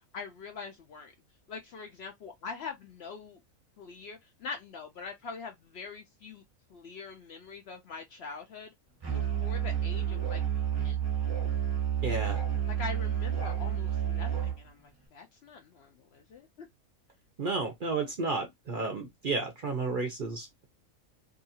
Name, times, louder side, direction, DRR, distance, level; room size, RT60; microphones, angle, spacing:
voice 1, 0.1-1.1 1.5-3.4 3.8-6.4 6.7-8.7 9.1-10.4 10.8-11.0 12.6-16.7, left 5 dB, 65° left, 0.7 m, -43 dB
Musical instrument, 9.0-14.6, right 10 dB, 20° right, 0.8 m, -30 dB
voice 2, 12.0-12.4 17.4-20.7, right 3 dB, 55° right, 0.6 m, -32 dB
2.7 x 2.3 x 2.6 m
omnidirectional pair, 1.5 m